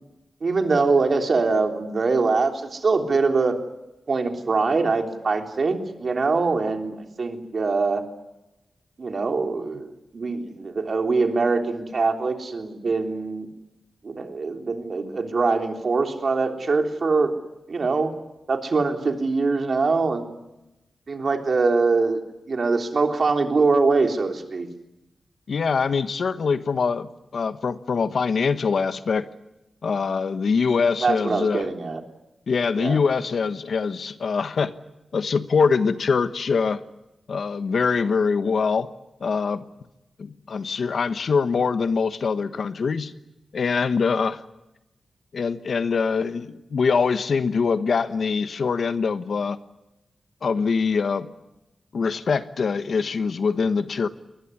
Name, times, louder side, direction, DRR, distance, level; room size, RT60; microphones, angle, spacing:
voice 1, 0.4-3.5 4.1-8.0 9.0-13.5 14.0-17.4 17.7-18.1 18.5-20.4 21.1-22.2 22.5-24.7 31.0-32.0 32.8-33.0, right 4 dB, 50° right, 4 dB, 3.5 m, -23 dB
voice 2, 25.5-29.3 29.8-31.7 32.5-34.7 35.1-36.8 37.3-38.9 39.2-39.6 40.2-43.1 43.5-44.4 45.3-49.6 50.4-51.3 51.9-54.1, left 5 dB, 65° left, 11 dB, 1.3 m, -23 dB
23.0 x 20.5 x 9.8 m, 0.94 s
wide cardioid pair, 105°, 0 cm